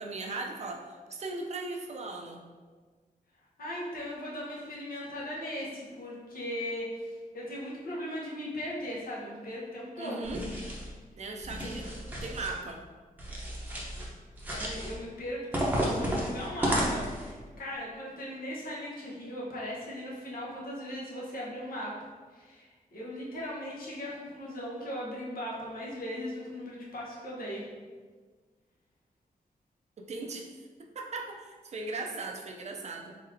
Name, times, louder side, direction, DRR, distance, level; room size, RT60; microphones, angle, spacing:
voice 1, 0.0-2.4 10.0-10.4 11.2-11.9 12.2-12.8 30.0-30.5 30.8-33.2, right 3 dB, 50° right, 2 dB, 0.5 m, -38 dB
voice 2, 3.6-10.3 11.6-11.7 14.4-21.9 22.3-27.7, equal, 75° left, -5 dB, 1.2 m, -38 dB
sound 1, 10.2-10.9 11.4-12.5 13.2-14.1 14.4-14.9 15.5-17.3, equal, 10° right, 0.8 m, -32 dB
4.1 x 4.0 x 2.7 m, 1.4 s
wide cardioid pair, 180°, 15 cm